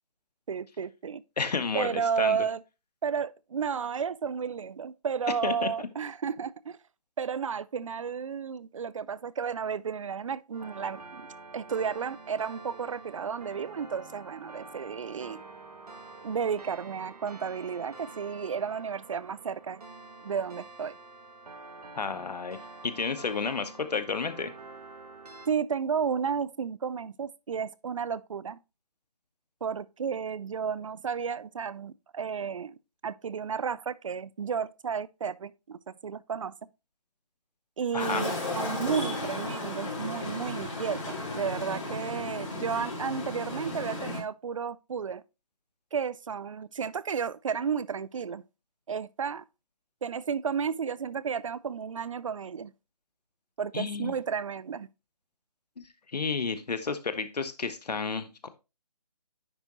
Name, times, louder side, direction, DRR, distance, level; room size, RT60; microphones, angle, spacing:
voice 1, 0.5-1.2 1.7-2.6 3.0-6.8 7.2-15.4 16.2-19.8 20.2-21.0 25.5-28.6 29.6-32.8 33.0-36.5 37.8-45.2 45.9-48.4 48.9-49.4 50.0-52.7 53.6-54.9, right 6 dB, 55° right, 0.4 m, -32 dB
voice 2, 1.4-1.9 2.2-2.4 5.4-5.7 21.9-24.5 37.9-38.3 53.7-54.2 56.1-58.5, left 5 dB, 85° left, 1.0 m, -31 dB
sound 1, 10.5-25.5, right 3 dB, 75° right, 1.4 m, -47 dB
sound 2, 38.0-44.2, left 2 dB, 50° left, 3.6 m, -34 dB
10.0 x 3.7 x 3.0 m
hypercardioid pair, 165°, 20 cm